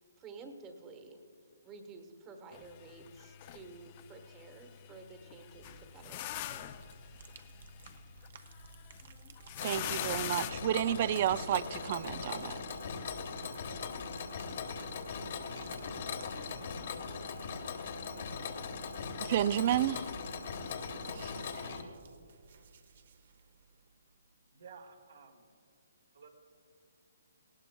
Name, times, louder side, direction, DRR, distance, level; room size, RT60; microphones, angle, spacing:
voice 1, 0.2-1.2 1.6-6.7, right 4 dB, 20° right, 6 dB, 1.1 m, -51 dB
sound 1, 2.5-10.5, left 13 dB, 35° left, 0.4 m, -44 dB
sound 2, 5.5-24.4, right 6 dB, 55° right, 0.9 m, -57 dB
Mechanisms, 9.6-21.8, left 5 dB, 55° left, 1.1 m, -40 dB
voice 2, 9.6-12.6 19.2-20.1 21.1-21.8, right 11 dB, 40° right, 19 dB, 0.3 m, -31 dB
voice 3, 24.5-25.5 26.1-26.3, right 5 dB, 80° right, 1 dB, 1.8 m, -53 dB
18.0 x 17.5 x 2.2 m, 2.3 s
hypercardioid pair, 150°, 0 cm